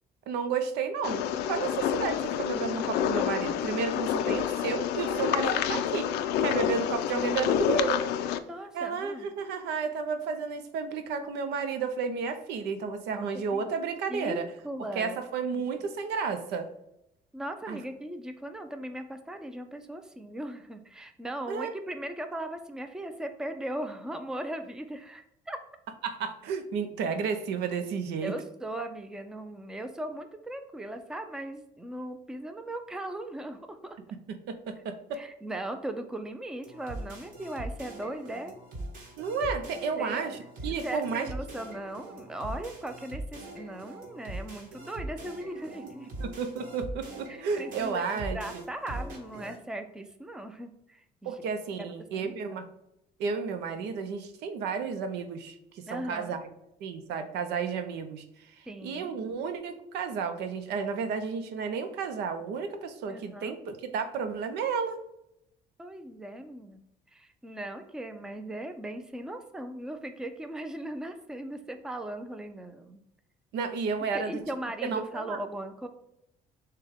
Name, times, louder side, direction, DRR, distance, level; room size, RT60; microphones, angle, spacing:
voice 1, 0.3-6.1 6.4-8.0 8.7-14.4 14.9-16.7 17.7-17.8 21.5-21.7 26.0-28.3 34.5-35.2 39.2-41.3 46.2-48.4 51.2-52.6 53.2-56.5 56.8-65.0 73.5-74.4 74.8-75.4, right 5 dB, 80° right, 8 dB, 0.6 m, -32 dB
sound 1, 1.0-8.4, left 10 dB, 90° left, 0.4 m, -28 dB
voice 2, 8.4-9.3 13.1-13.3 13.5-13.7 14.1-15.2 15.8-15.9 17.3-25.6 28.2-34.0 35.1-38.6 40.0-40.2 40.8-46.1 47.3-51.5 51.8-51.9 52.1-52.6 55.9-56.4 58.7-59.1 63.1-63.5 65.8-66.8 67.1-73.0 74.1-75.9, right 1 dB, 5° right, 7 dB, 0.4 m, -38 dB
sound 2, 36.6-49.6, right 1 dB, 55° right, 1.5 m, -41 dB
6.6 x 2.2 x 3.5 m, 0.82 s
cardioid pair, 110°, 17 cm